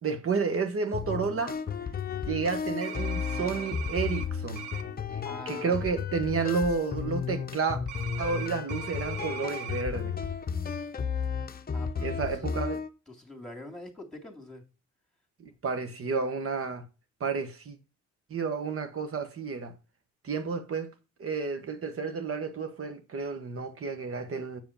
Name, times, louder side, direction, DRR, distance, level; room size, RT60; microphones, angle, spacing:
voice 1, 0.0-1.6 2.3-4.6 5.1-7.8 8.2-10.1 12.0-12.8 15.4-16.8 17.2-17.8 18.3-19.7 20.2-20.9 21.2-24.6, right 5 dB, 45° right, 1.4 m, -31 dB
sound 1, 0.9-12.9, left 6 dB, 30° left, 0.7 m, -33 dB
sound 2, 2.8-4.3 4.6-4.8 7.9-9.8, right 8 dB, 80° right, 1.1 m, -40 dB
voice 2, 5.2-5.8 11.7-12.6 13.1-14.6, left 1 dB, ahead, 2.4 m, -44 dB
7.7 x 4.8 x 5.6 m
cardioid pair, 90°, 30 cm